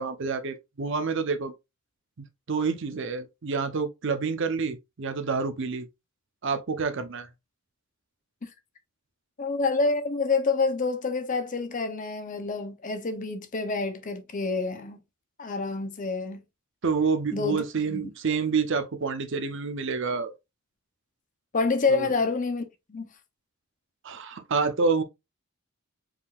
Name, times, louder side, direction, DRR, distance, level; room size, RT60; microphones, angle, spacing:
voice 1, 0.0-1.5 2.5-5.9 6.4-7.3 16.8-20.3 21.9-22.1 24.0-25.0, right 5 dB, 55° right, 0.6 m, -28 dB
voice 2, 9.4-15.0 15.4-16.4 17.3-17.6 17.9-18.1 21.5-23.1, left 4 dB, 35° left, 0.6 m, -27 dB
4.8 x 3.6 x 2.3 m
head